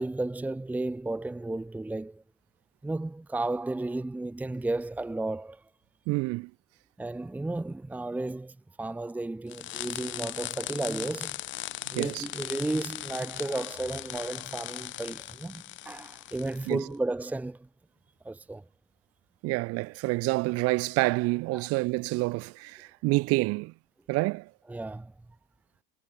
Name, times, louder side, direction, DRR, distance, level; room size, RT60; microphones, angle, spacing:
voice 1, 0.0-2.2 2.8-5.6 7.0-11.4 11.9-17.7 18.2-18.6 21.5-21.7 24.7-25.1, right 2 dB, 5° right, 1.1 m, -33 dB
voice 2, 6.1-6.5 11.9-12.3 16.7-16.8 19.4-23.7 24.1-24.5, right 23 dB, 50° right, 2.5 m, -28 dB
sound 1, 9.5-16.7, left 15 dB, 40° left, 2.1 m, -38 dB
supercardioid pair, 135°, 31 cm